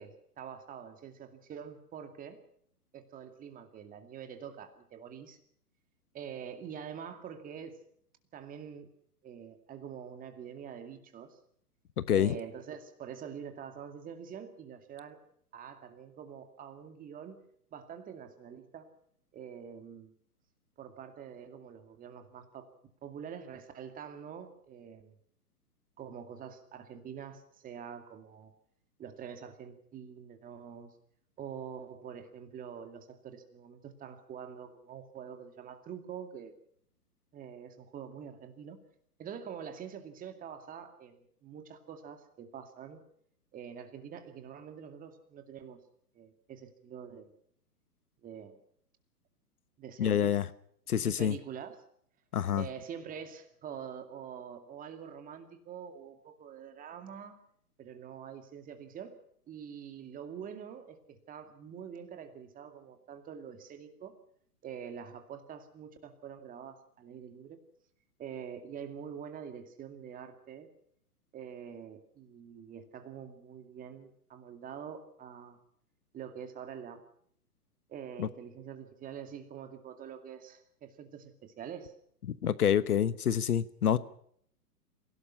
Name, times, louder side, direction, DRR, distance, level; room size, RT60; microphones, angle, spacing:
voice 1, 0.0-2.4 2.9-5.4 6.1-7.8 8.3-8.9 9.2-11.4 12.1-15.2 15.5-17.4 17.7-18.9 19.3-20.1 20.8-22.7 23.0-25.2 26.0-28.5 29.0-30.9 31.4-36.5 37.3-38.8 39.2-43.0 43.5-45.8 46.1-47.3 48.2-48.6 49.8-50.4 50.9-51.8 52.6-57.4 57.8-59.2 59.5-64.1 64.6-67.6 68.2-70.7 71.3-75.6 76.1-77.0 77.9-81.9, right 8 dB, 15° right, 8 dB, 2.3 m, -45 dB
voice 2, 50.0-50.5 50.9-51.3 52.3-52.6 78.2-78.3 82.3-84.0, left 9 dB, 65° left, 16 dB, 1.2 m, -27 dB
27.5 x 17.5 x 5.6 m, 0.65 s
figure-of-eight pair, 125°, 48 cm